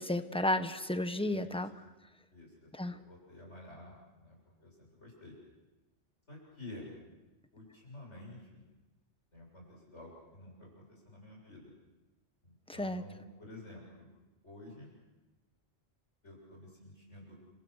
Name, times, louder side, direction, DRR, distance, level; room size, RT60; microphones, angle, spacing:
voice 1, 0.0-1.7 2.7-2.9 12.7-13.0, left 1 dB, 5° left, 9 dB, 1.0 m, -32 dB
voice 2, 1.3-1.6 2.3-5.4 6.3-6.9 7.5-8.6 9.3-11.7 12.4-14.1 14.4-14.9 16.2-17.4, left 1 dB, 75° left, -2 dB, 7.5 m, -51 dB
29.5 x 26.0 x 6.4 m, 1.1 s
omnidirectional pair, 1.2 m